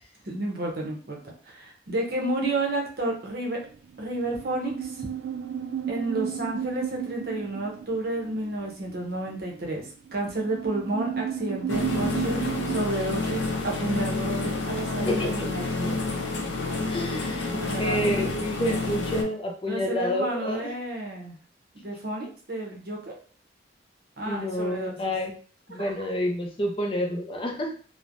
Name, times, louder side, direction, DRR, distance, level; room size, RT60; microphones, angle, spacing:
voice 1, 0.2-1.2 1.4-3.6 4.0-5.1 5.9-9.8 10.1-12.4 12.7-16.0 17.6-18.1 19.7-21.4 21.7-23.2 24.2-25.1 25.8-25.9 27.5-27.6, right 2 dB, 55° right, 0 dB, 0.8 m, -31 dB
sound 1, 3.6-12.9, right 8 dB, 80° right, 0.3 m, -33 dB
sound 2, 11.7-19.2, left 3 dB, 80° left, 0.6 m, -29 dB
voice 2, 15.1-15.5 16.8-20.7 24.3-25.3 25.7-27.7, equal, 30° left, 3 dB, 0.4 m, -29 dB
3.1 x 2.1 x 2.5 m, 0.43 s
head